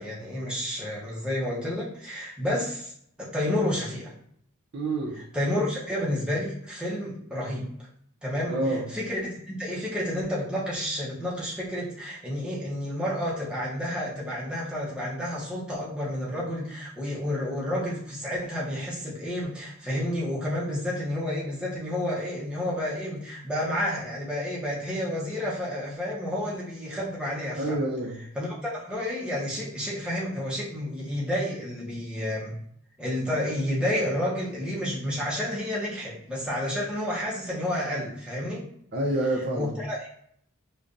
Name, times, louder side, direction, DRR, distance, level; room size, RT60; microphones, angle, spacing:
voice 1, 0.0-2.9 3.2-4.1 5.2-7.7 8.2-27.8 28.3-32.6 33.0-38.7 39.5-40.1, left 1 dB, 5° right, -6 dB, 0.7 m, -30 dB
voice 2, 4.7-5.2 8.5-8.8 27.6-28.2 38.9-39.7, right 1 dB, 45° right, -1 dB, 0.5 m, -27 dB
5.1 x 2.2 x 2.6 m, 0.67 s
head